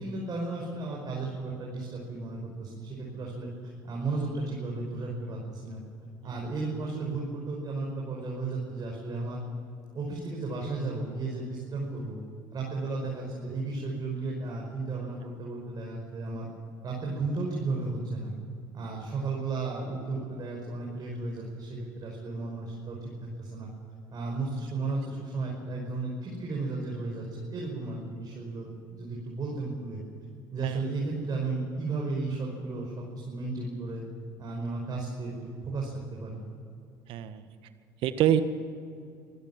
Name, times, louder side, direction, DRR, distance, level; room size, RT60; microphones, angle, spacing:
voice 1, 0.0-5.8 6.2-9.4 9.9-12.2 12.5-16.5 16.8-18.3 18.7-23.7 24.1-30.0 30.5-34.0 34.4-36.4, right 3 dB, 40° right, -2 dB, 5.5 m, -34 dB
voice 2, 37.1-37.4 38.0-38.4, right 11 dB, 65° right, 11 dB, 1.6 m, -25 dB
25.0 x 16.0 x 7.6 m, 2.5 s
hypercardioid pair, 70°, 10 cm